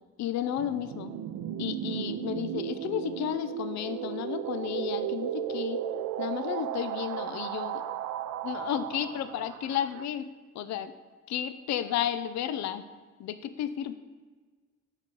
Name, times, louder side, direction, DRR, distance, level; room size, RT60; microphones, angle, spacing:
voice 1, 0.2-1.1 1.6-5.8 6.2-7.8 8.4-10.3 10.5-10.9 11.3-12.8 13.2-13.9, left 10 dB, 65° left, 12 dB, 0.5 m, -32 dB
sound 1, 0.6-10.0, right 11 dB, 75° right, 0.5 m, -35 dB
5.9 x 4.9 x 4.5 m, 1.4 s
cardioid pair, 90°, 30 cm